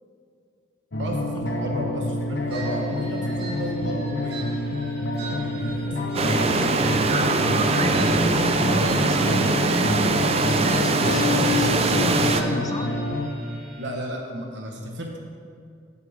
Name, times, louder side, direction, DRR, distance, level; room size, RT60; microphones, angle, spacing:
sound 1, 0.9-13.3, left 1 dB, 70° left, 1.0 m, -27 dB
voice 1, 1.0-4.4 5.1-6.8 12.0-12.7 13.8-15.2, equal, 80° right, 1 dB, 1.4 m, -34 dB
sound 2, 2.5-13.9, right 3 dB, 65° right, 2.5 m, -42 dB
sound 3, 6.1-12.4, right 3 dB, 35° right, 0.5 m, -22 dB
voice 2, 7.6-12.9, left 1 dB, 20° left, 6 dB, 0.6 m, -30 dB
17.0 x 6.9 x 3.6 m, 2.4 s
head